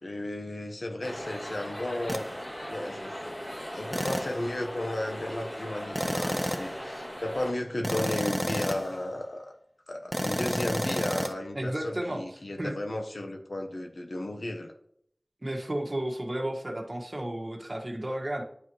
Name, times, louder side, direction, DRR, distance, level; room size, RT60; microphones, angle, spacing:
voice 1, 0.0-2.3 2.7-3.3 3.7-9.6 9.9-14.7, left 1 dB, 90° left, 4 dB, 1.0 m, -34 dB
sound 1, 1.0-7.5, equal, 30° left, 3.1 m, -38 dB
sound 2, 2.1-2.3 3.9-4.4 5.9-6.8 7.8-9.0 10.1-11.3, equal, 5° left, 0.7 m, -30 dB
voice 2, 11.5-12.2 12.6-12.7 15.4-18.4, right 1 dB, 50° right, 1 dB, 1.6 m, -32 dB
10.5 x 4.8 x 3.1 m, 0.66 s
wide cardioid pair, 45°, 0 cm